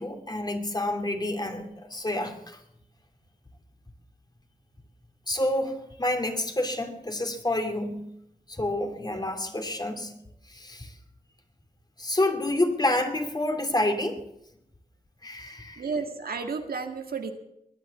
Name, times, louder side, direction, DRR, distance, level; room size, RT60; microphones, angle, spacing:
voice 1, 0.0-2.6 5.3-8.1 8.5-10.1 10.5-10.9 12.0-14.2 15.2-15.8, left 1 dB, 25° left, 5 dB, 2.7 m, -28 dB
voice 2, 15.8-17.3, right 5 dB, 80° right, 5 dB, 1.8 m, -32 dB
21.5 x 9.5 x 7.1 m, 0.82 s
cardioid pair, 65°, 15 cm